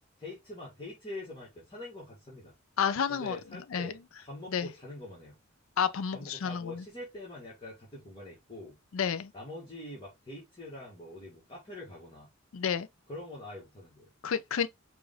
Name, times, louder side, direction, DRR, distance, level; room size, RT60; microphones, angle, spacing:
voice 1, 0.2-2.5 3.1-5.4 6.1-8.8 9.3-12.3 13.1-14.1, left 1 dB, 25° left, 1.5 m, -44 dB
voice 2, 2.8-3.4 3.7-3.9 4.5-4.7 5.8-6.8 8.9-9.3 12.5-12.9 14.2-14.7, left 7 dB, 70° left, 0.4 m, -30 dB
4.8 x 2.5 x 3.6 m
head